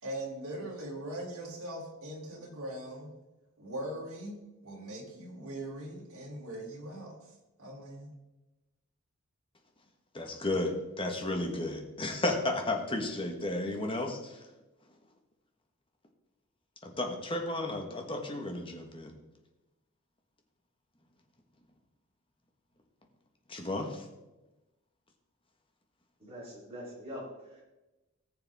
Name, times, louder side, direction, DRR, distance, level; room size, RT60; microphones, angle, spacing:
voice 1, 0.0-3.1 3.6-8.1, right 1 dB, 75° right, -2 dB, 3.4 m, -41 dB
voice 2, 10.1-14.4 16.8-19.1 23.5-24.0, left 2 dB, 25° left, 3 dB, 1.4 m, -33 dB
voice 3, 26.2-27.6, equal, 25° right, -4 dB, 4.2 m, -43 dB
18.5 x 6.9 x 3.6 m, 1.1 s
head